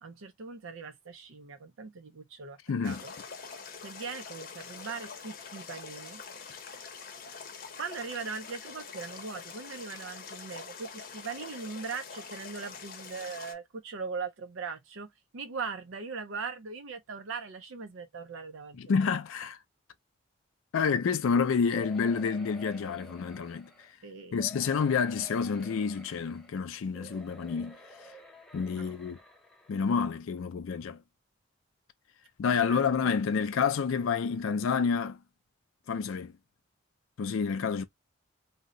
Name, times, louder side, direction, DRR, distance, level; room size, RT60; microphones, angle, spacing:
voice 1, 0.0-3.1 3.8-6.2 7.8-15.1 15.3-18.8 24.0-24.4 28.7-28.9 32.5-32.8, right 5 dB, 80° right, 0.5 m, -40 dB
voice 2, 2.7-3.0 18.8-19.6 20.7-23.7 24.3-27.8 28.5-29.2 29.7-31.0 32.4-35.2 35.9-36.3 37.2-37.8, left 6 dB, 85° left, 0.4 m, -29 dB
sound 1, 2.8-13.5, left 5 dB, 45° left, 0.7 m, -45 dB
sound 2, 21.7-23.9 24.4-26.5 26.9-29.8 30.4-30.5 30.7-30.8, equal, ahead, 0.5 m, -50 dB
2.7 x 2.1 x 3.7 m
head